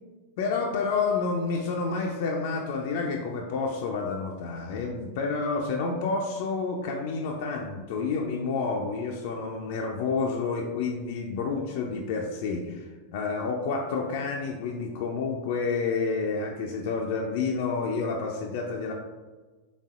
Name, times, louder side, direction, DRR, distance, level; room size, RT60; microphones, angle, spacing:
voice 1, 0.4-18.9, left 4 dB, 60° left, 0 dB, 0.4 m, -29 dB
4.1 x 3.3 x 2.4 m, 1.3 s
hypercardioid pair, 100°, 0 cm